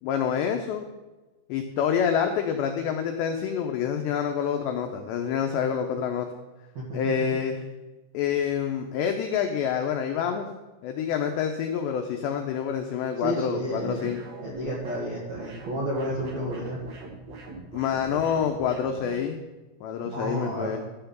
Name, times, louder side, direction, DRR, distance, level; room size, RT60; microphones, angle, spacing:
voice 1, 0.0-0.9 1.5-6.3 6.9-7.6 8.1-10.5 10.8-14.2 17.7-19.4 19.8-20.8, left 8 dB, 85° left, 4 dB, 2.4 m, -27 dB
voice 2, 6.7-7.4 13.2-14.2 14.4-16.8 20.0-20.8, right 1 dB, 65° right, -4 dB, 1.7 m, -31 dB
sound 1, 13.9-19.3, right 2 dB, 85° right, 1.5 m, -43 dB
13.5 x 5.8 x 6.9 m, 1.2 s
omnidirectional pair, 5.9 m